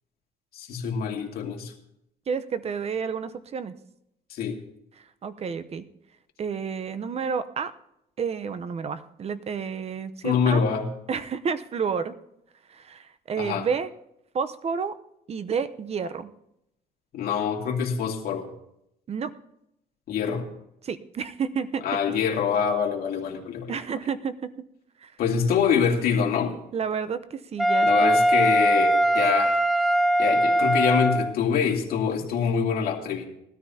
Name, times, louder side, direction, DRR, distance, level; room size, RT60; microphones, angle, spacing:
voice 1, 0.5-1.7 4.3-4.6 10.2-10.8 13.4-13.7 17.1-18.5 20.1-20.5 21.8-23.7 25.2-26.5 27.8-29.6 30.2-33.3, left 7 dB, 65° left, 0 dB, 2.4 m, -25 dB
voice 2, 2.3-3.7 5.2-5.9 6.4-7.7 8.2-10.6 11.1-12.1 12.7-13.9 14.3-15.0 15.3-16.3 19.1-19.3 20.8-21.8 23.7-24.5 25.0-25.1 26.7-28.2, right 6 dB, 40° right, 12 dB, 0.8 m, -30 dB
Wind instrument woodwind instrument, 27.6-31.4, equal, ahead, 0.4 m, -21 dB
20.0 x 13.0 x 2.8 m, 0.80 s
cardioid pair, 110°, 17 cm